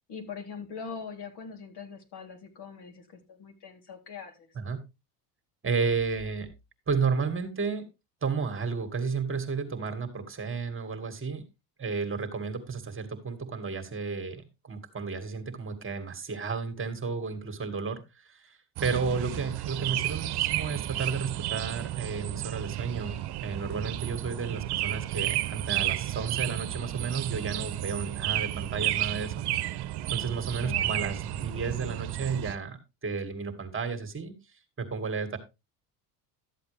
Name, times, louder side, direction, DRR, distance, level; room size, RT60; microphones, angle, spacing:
voice 1, 0.1-4.5 19.1-19.2 30.6-31.0, left 5 dB, 55° left, 4 dB, 3.6 m, -42 dB
voice 2, 5.6-6.5 6.9-7.9 8.2-11.4 11.8-29.5 30.1-34.3 34.8-35.4, right 5 dB, 25° right, 7 dB, 2.3 m, -32 dB
sound 1, 18.8-32.6, right 14 dB, 55° right, 1.1 m, -32 dB
13.0 x 7.8 x 3.5 m, 0.26 s
supercardioid pair, 90°, 48 cm